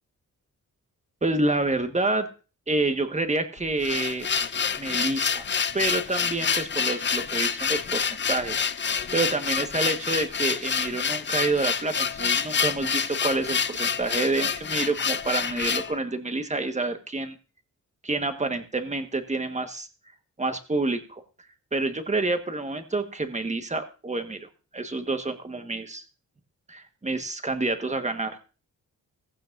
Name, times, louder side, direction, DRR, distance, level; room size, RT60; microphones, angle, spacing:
voice 1, 1.2-2.3 2.7-4.3 4.8-5.4 5.7-8.9 9.1-17.3 18.0-19.9 20.4-21.2 21.7-24.5 24.7-26.0 26.7-28.4, right 2 dB, 20° right, 7 dB, 1.5 m, -28 dB
sound 1, 3.6-15.9, left 6 dB, 35° left, 0.6 m, -27 dB
15.5 x 15.5 x 2.6 m, 0.35 s
cardioid pair, 85°, 31 cm